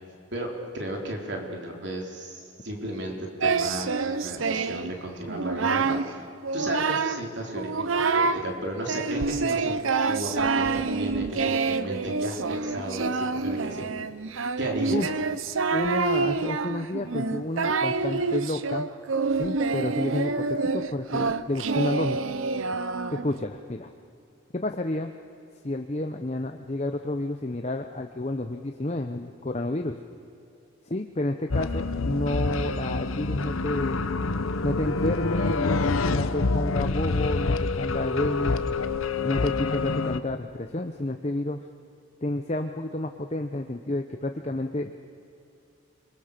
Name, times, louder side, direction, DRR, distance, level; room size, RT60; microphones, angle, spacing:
voice 1, 0.3-6.2 6.5-13.9 14.6-15.0, right 1 dB, 55° right, 1 dB, 3.8 m, -34 dB
Singing, 3.4-4.9 5.3-6.1 6.4-7.2 7.6-8.4 8.9-23.4, right 4 dB, 80° right, 0.8 m, -27 dB
voice 2, 15.7-18.9 19.4-22.2 23.1-23.9 24.5-25.1 25.6-30.0 30.9-34.1 34.6-38.7 39.2-41.6 42.2-45.1, left 1 dB, 30° left, 5 dB, 0.8 m, -30 dB
sound 1, 31.5-40.2, left 3 dB, 90° left, 0.9 m, -27 dB
28.5 x 22.0 x 6.8 m, 2.6 s
head